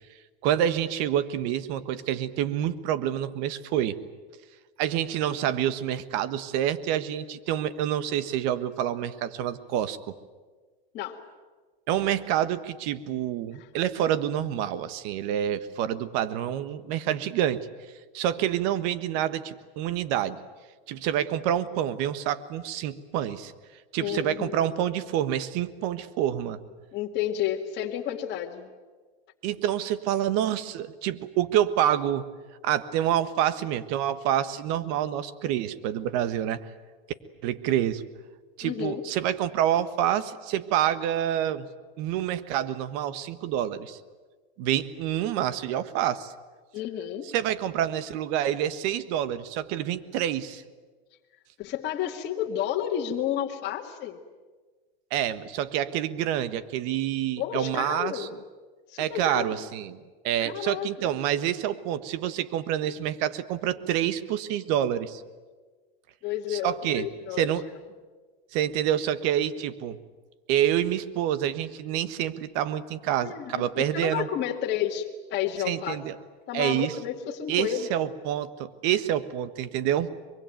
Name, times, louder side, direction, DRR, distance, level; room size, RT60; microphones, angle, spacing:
voice 1, 0.4-4.0 4.8-10.1 11.9-17.7 18.1-20.4 20.9-23.5 23.9-26.6 29.4-32.3 32.6-36.7 37.4-38.0 38.6-41.7 42.0-44.0 44.6-46.3 47.3-50.6 55.1-58.3 59.0-60.0 60.2-65.2 66.5-67.1 67.4-67.7 68.5-70.0 70.5-74.3 75.6-76.1 76.5-76.9 77.5-80.1, right 11 dB, 55° right, 14 dB, 1.5 m, -27 dB
voice 2, 24.0-24.7 26.9-28.7 38.6-39.0 46.7-47.3 51.6-54.2 57.4-58.3 58.9-59.5 60.4-61.1 66.2-67.5 73.2-77.9, left 10 dB, 35° left, -1 dB, 2.1 m, -31 dB
24.0 x 23.0 x 9.2 m, 1.4 s
supercardioid pair, 130°, 30 cm